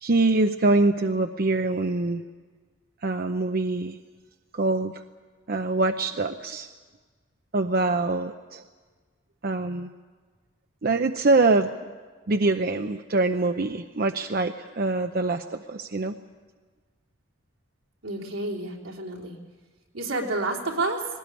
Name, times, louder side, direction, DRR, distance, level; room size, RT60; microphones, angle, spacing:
voice 1, 0.0-2.2 3.0-4.0 4.5-5.0 5.5-6.7 7.5-8.6 9.4-9.9 10.8-11.7 12.3-16.2, right 2 dB, 45° right, 6 dB, 0.7 m, -24 dB
voice 2, 18.0-19.4 19.9-21.1, right 2 dB, 80° right, -1 dB, 3.3 m, -29 dB
20.0 x 18.5 x 9.7 m, 1.4 s
head